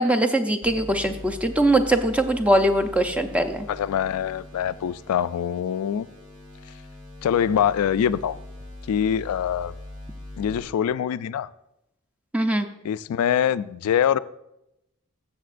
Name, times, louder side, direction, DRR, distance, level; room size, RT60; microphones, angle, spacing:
voice 1, 0.0-3.6 12.3-12.7, right 1 dB, 5° right, 5 dB, 0.5 m, -21 dB
sound 1, 0.6-10.6, left 1 dB, 60° right, 3.0 m, -42 dB
voice 2, 3.7-6.1 7.2-8.4 8.9-9.8 10.4-11.5 12.8-14.2, left 9 dB, 85° left, 16 dB, 0.3 m, -24 dB
14.0 x 7.2 x 2.5 m, 0.84 s
head